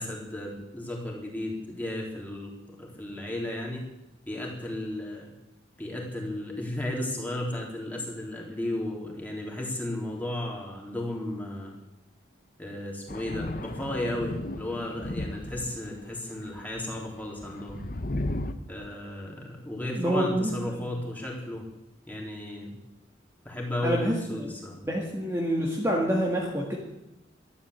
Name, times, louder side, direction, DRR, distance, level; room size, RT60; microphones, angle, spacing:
voice 1, 0.0-2.5 2.8-3.8 4.3-5.3 5.8-11.7 12.6-17.8 18.7-21.6 22.1-22.8 23.4-24.8, left 1 dB, 10° left, -2 dB, 3.4 m, -34 dB
Thunder, 13.1-16.0 16.6-18.5, left 1 dB, 45° left, 1.0 m, -35 dB
voice 2, 19.9-20.9 23.8-24.4 24.8-26.7, equal, 15° right, -2 dB, 1.8 m, -27 dB
13.0 x 11.5 x 7.9 m, 0.93 s
head